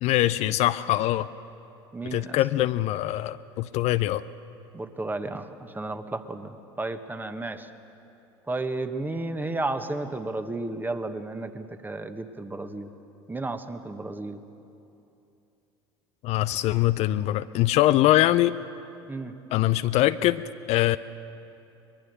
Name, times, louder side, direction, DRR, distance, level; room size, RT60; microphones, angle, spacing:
voice 1, 0.0-1.3 2.1-4.2 16.2-18.5 19.5-21.0, left 15 dB, 50° left, 13 dB, 0.5 m, -23 dB
voice 2, 1.9-2.4 4.7-7.7 8.5-12.9 13.3-14.4 19.1-19.3, right 2 dB, 15° right, 9 dB, 1.4 m, -33 dB
23.0 x 21.5 x 6.7 m, 2.8 s
hypercardioid pair, 75°, 14 cm